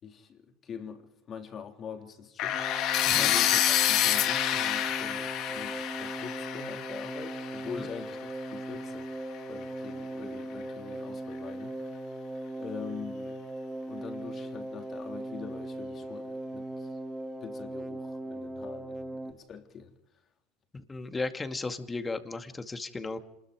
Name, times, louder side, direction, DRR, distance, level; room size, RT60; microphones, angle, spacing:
voice 1, 0.0-2.6 3.1-12.1 12.6-13.4 13.8-17.0 17.4-19.9, left 6 dB, 40° left, 3.4 m, -44 dB
sound 1, 2.4-8.3, left 11 dB, 55° left, 1.8 m, -28 dB
sound 2, 2.5-19.3, right 1 dB, 5° right, 1.5 m, -39 dB
voice 2, 20.7-23.2, left 3 dB, 20° left, 2.2 m, -35 dB
26.5 x 21.0 x 5.1 m
hypercardioid pair, 90°, 0 cm